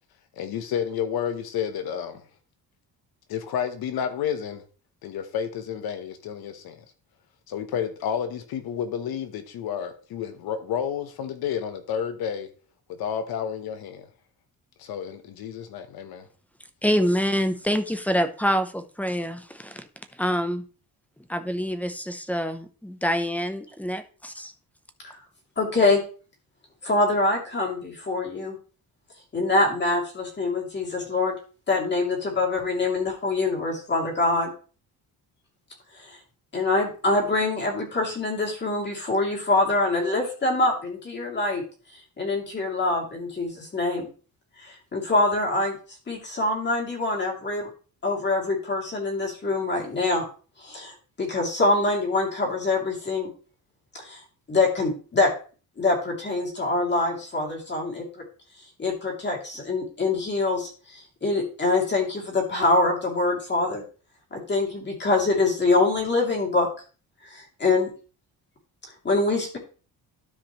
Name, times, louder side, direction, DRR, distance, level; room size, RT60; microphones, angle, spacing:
voice 1, 0.4-2.2 3.3-4.6 5.0-6.8 7.5-12.5 12.9-14.1 14.8-16.3, left 8 dB, 80° left, 1.2 m, -30 dB
voice 2, 16.8-19.8 20.2-20.6 21.3-24.5, equal, 5° left, 0.7 m, -26 dB
voice 3, 25.6-26.0 26.8-28.6 29.3-31.3 31.7-34.5 36.0-36.2 36.5-41.6 42.2-44.1 44.6-45.8 46.1-47.7 48.0-50.3 50.6-53.3 54.0-54.2 54.5-55.3 55.8-58.2 58.8-63.8 64.3-66.7 67.2-67.9 69.0-69.6, left 2 dB, 30° left, 2.9 m, -24 dB
12.5 x 5.0 x 3.1 m
cardioid pair, 150°, 36 cm